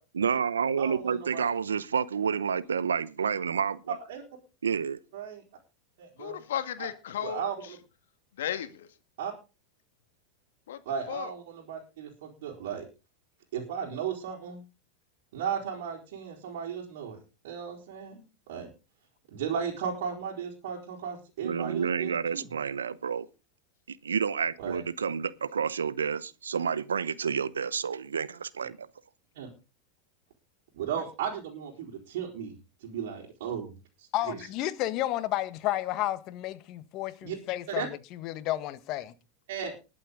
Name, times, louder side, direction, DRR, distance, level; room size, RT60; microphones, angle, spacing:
voice 1, 0.1-4.0 4.6-5.0 21.4-23.3 23.9-28.9, right 6 dB, 90° right, 0.8 m, -29 dB
voice 2, 0.8-1.5 4.1-4.2 5.1-5.4 6.0-6.4 6.8-6.9 7.2-7.8 9.2-9.3 10.9-12.8 13.5-14.6 15.3-17.2 17.4-18.2 18.5-18.7 19.3-22.5 24.6-24.8 29.4-29.5 30.7-32.5 32.8-33.7 34.0-34.4 37.2-37.4 37.7-37.9 39.5-39.7, right 7 dB, 70° right, 4.2 m, -35 dB
voice 3, 6.2-7.4 8.4-8.9 10.7-10.8 11.1-11.3, left 10 dB, 75° left, 1.9 m, -34 dB
voice 4, 34.1-39.1, left 14 dB, 50° left, 1.5 m, -32 dB
20.5 x 7.8 x 3.8 m
hypercardioid pair, 100°, 0 cm